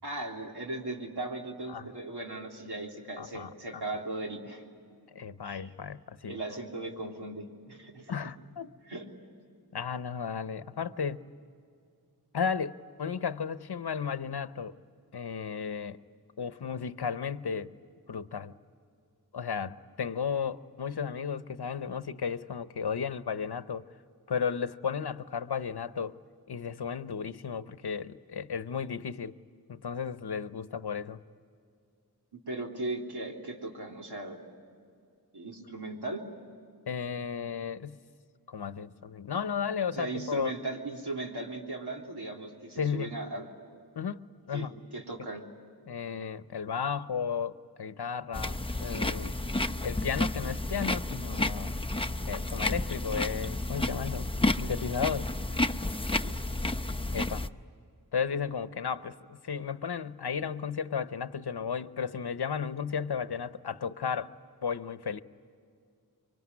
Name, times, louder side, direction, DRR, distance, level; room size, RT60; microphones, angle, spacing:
voice 1, 0.0-4.6 5.4-5.7 6.3-8.2 8.9-9.0 32.3-34.4 35.3-36.2 39.9-43.5 44.5-45.4 56.1-56.3, right 2 dB, 85° right, 0 dB, 3.4 m, -38 dB
voice 2, 3.2-3.8 5.1-6.4 8.1-8.7 9.7-11.2 12.3-14.8 15.1-16.0 16.4-17.7 18.1-18.5 19.3-23.8 24.3-26.2 26.5-29.3 29.7-31.2 36.9-38.0 38.5-40.5 42.8-43.1 43.9-44.2 44.5-44.7 45.9-51.7 52.3-54.3 54.6-55.3 57.1-57.5 58.1-64.3 64.6-65.2, left 6 dB, 85° left, 13 dB, 0.9 m, -34 dB
sound 1, 48.3-57.5, left 2 dB, 15° left, 0.7 m, -31 dB
25.5 x 24.0 x 9.6 m, 2.4 s
wide cardioid pair, 60°, 39 cm